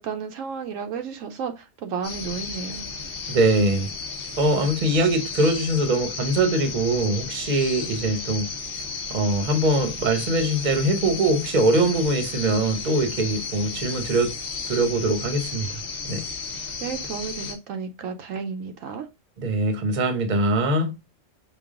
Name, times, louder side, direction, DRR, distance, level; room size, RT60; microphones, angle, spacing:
voice 1, 0.0-2.9 16.8-19.1, right 6 dB, 80° right, 1.0 m, -32 dB
sound 1, 2.0-17.6, left 4 dB, 50° left, 0.9 m, -34 dB
voice 2, 3.3-3.9 4.4-8.5 9.1-14.3 14.6-16.3 19.4-21.0, right 2 dB, 40° right, 0.9 m, -22 dB
5.2 x 2.3 x 3.6 m
omnidirectional pair, 1.4 m